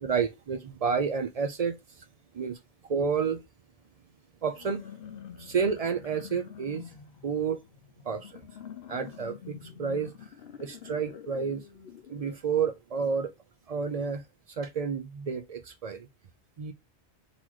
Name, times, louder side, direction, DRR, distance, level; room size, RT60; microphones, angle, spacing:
voice 1, 0.0-1.8 2.3-2.6 2.9-3.4 4.4-4.8 5.4-6.8 7.2-7.6 8.0-8.4 8.9-10.1 10.6-11.6 12.1-13.3 13.7-14.2 14.6-16.1 16.6-16.7, right 6 dB, 55° right, 0.4 m, -30 dB
sound 1, 4.5-12.4, left 8 dB, 65° left, 0.8 m, -46 dB
4.0 x 2.9 x 3.0 m
omnidirectional pair, 1.1 m